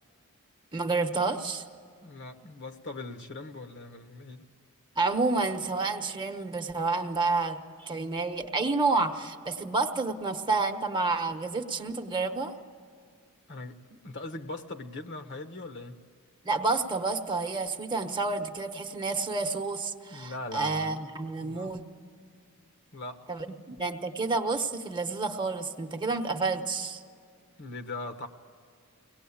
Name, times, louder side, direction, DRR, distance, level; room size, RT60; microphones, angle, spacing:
voice 1, 0.7-1.6 5.0-12.5 16.4-21.8 23.3-27.0, right 3 dB, 20° right, 5 dB, 1.1 m, -29 dB
voice 2, 2.0-4.5 13.5-13.7 14.0-16.0 20.1-21.0 21.4-21.8 22.9-23.4 27.6-28.3, left 2 dB, 55° left, 7 dB, 1.4 m, -40 dB
23.5 x 18.5 x 8.6 m, 2.3 s
head